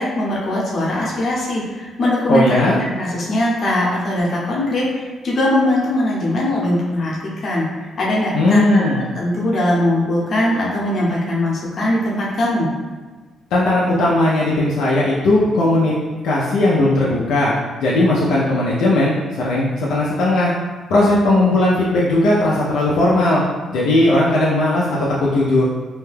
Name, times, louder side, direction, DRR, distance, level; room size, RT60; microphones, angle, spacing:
voice 1, 0.0-12.7, left 1 dB, 50° left, -5 dB, 0.9 m, -21 dB
voice 2, 2.3-2.8 8.3-9.0 13.5-15.9 16.2-17.5 17.8-20.5 20.9-23.4 23.7-25.6, left 1 dB, 85° left, -6 dB, 0.5 m, -17 dB
2.8 x 2.2 x 3.3 m, 1.3 s
cardioid pair, 90°, 0 cm